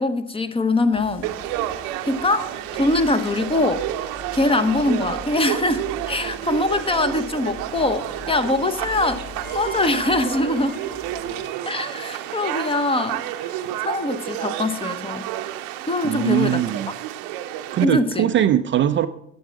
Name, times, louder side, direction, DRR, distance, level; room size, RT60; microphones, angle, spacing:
voice 1, 0.0-1.3 2.1-2.5 2.8-3.8 4.3-9.2 9.5-10.8 11.7-13.5 13.8-15.3 15.9-16.6 17.8-18.3, left 2 dB, 15° left, 0.7 m, -22 dB
sound 1, 0.9-11.5, left 3 dB, 30° left, 2.2 m, -42 dB
Conversation / Crowd, 1.2-17.8, right 13 dB, 60° right, 0.8 m, -30 dB
Wind instrument woodwind instrument, 9.4-14.3, equal, 55° left, 4.1 m, -43 dB
voice 2, 16.0-16.9 17.7-19.1, right 11 dB, 30° right, 0.4 m, -21 dB
11.5 x 7.4 x 4.6 m
hypercardioid pair, 65°, 40 cm